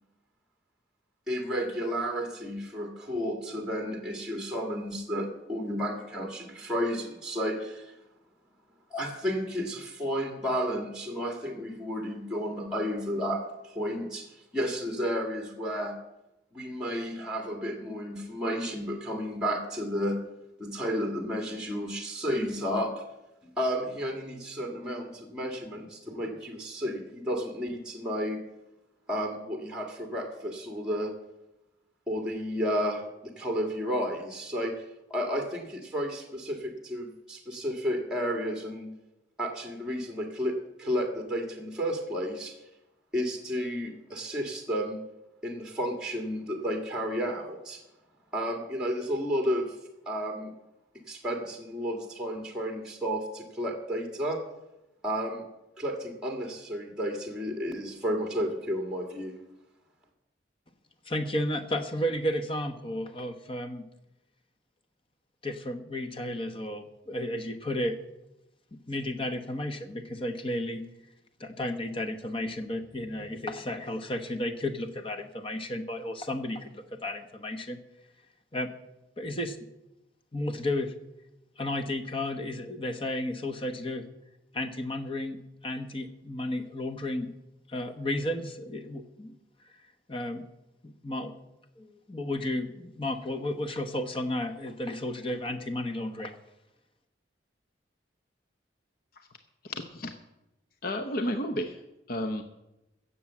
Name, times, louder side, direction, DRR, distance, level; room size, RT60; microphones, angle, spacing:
voice 1, 1.3-8.0 8.9-16.0 16.5-20.3 20.6-23.0 23.6-28.4 29.1-31.1 32.1-34.7 35.1-38.9 39.4-40.5 40.8-42.6 43.1-45.0 45.4-47.8 48.3-49.8 50.1-50.5 51.1-54.4 55.0-55.4 55.8-59.4, equal, 5° right, 2 dB, 1.6 m, -32 dB
voice 2, 61.1-63.9 65.4-68.0 68.7-70.8 71.4-77.8 78.5-78.7 79.2-79.6 80.3-80.9 81.6-84.1 84.5-87.3 87.7-89.3 90.1-90.4 90.8-91.3 91.8-96.4, left 1 dB, 30° left, 8 dB, 1.1 m, -33 dB
voice 3, 99.6-100.1 100.8-102.4, left 1 dB, 55° left, 7 dB, 0.8 m, -32 dB
16.0 x 7.1 x 7.3 m, 0.95 s
head